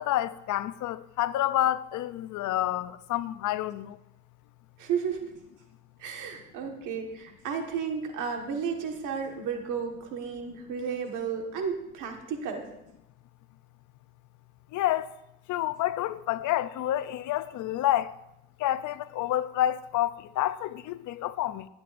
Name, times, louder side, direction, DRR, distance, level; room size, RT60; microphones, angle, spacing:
voice 1, 0.0-4.0 14.7-15.1 15.5-18.1 18.6-21.7, left 13 dB, 80° left, 0.5 m, -29 dB
voice 2, 4.8-5.3 6.0-12.7, right 6 dB, 85° right, 1.6 m, -33 dB
15.0 x 8.6 x 2.5 m
cardioid pair, 90°, 30 cm